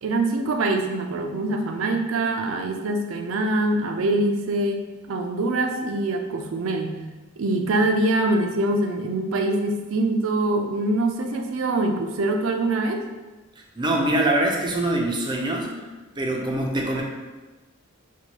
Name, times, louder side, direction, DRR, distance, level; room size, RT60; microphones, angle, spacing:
voice 1, 0.0-7.0 7.4-13.0, right 2 dB, 75° right, 5 dB, 0.4 m, -24 dB
voice 2, 13.8-15.7 16.2-17.0, right 1 dB, 20° right, 0 dB, 0.5 m, -23 dB
4.4 x 2.3 x 2.9 m, 1.2 s
head